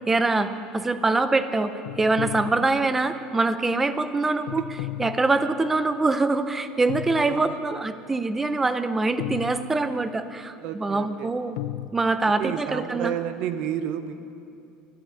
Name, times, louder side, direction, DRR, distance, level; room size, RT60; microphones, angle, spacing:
voice 1, 0.1-4.6 5.0-11.6 11.9-13.1, right 3 dB, 10° right, 11 dB, 0.6 m, -24 dB
sound 1, 1.8-3.1 4.5-5.7 6.9-7.8 9.2-10.2 11.6-11.9, left 14 dB, 85° left, 0.4 m, -35 dB
voice 2, 7.3-7.6 10.6-11.3 12.2-14.1, right 10 dB, 55° right, 10 dB, 0.8 m, -31 dB
12.0 x 11.0 x 8.3 m, 2.6 s
cardioid pair, 160°, 2 cm